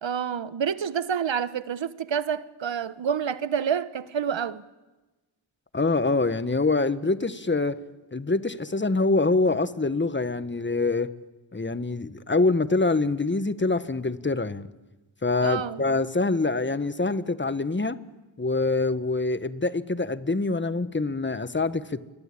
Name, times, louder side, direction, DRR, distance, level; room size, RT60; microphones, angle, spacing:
voice 1, 0.0-4.6 15.4-15.8, right 7 dB, 70° right, 1.1 m, -28 dB
voice 2, 5.7-7.8 8.1-11.1 11.5-14.7 15.2-18.0 18.4-22.0, left 3 dB, 25° left, 1.4 m, -25 dB
27.5 x 23.0 x 8.6 m
cardioid pair, 45°, 47 cm